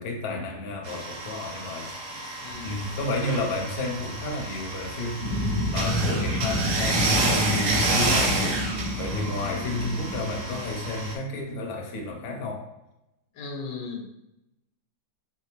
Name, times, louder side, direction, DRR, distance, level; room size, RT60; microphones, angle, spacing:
voice 1, 0.0-12.7, left 2 dB, 65° left, 1 dB, 1.2 m, -32 dB
sound 1, 0.8-11.1, right 2 dB, 60° right, 1.0 m, -30 dB
voice 2, 2.4-3.0 13.3-14.1, left 4 dB, 85° left, 1 dB, 1.5 m, -37 dB
sound 2, 2.5-11.1, right 2 dB, 85° right, 1.4 m, -45 dB
sound 3, 5.2-10.8, left 1 dB, 20° right, 1.5 m, -29 dB
4.0 x 3.4 x 3.0 m, 0.89 s
omnidirectional pair, 1.9 m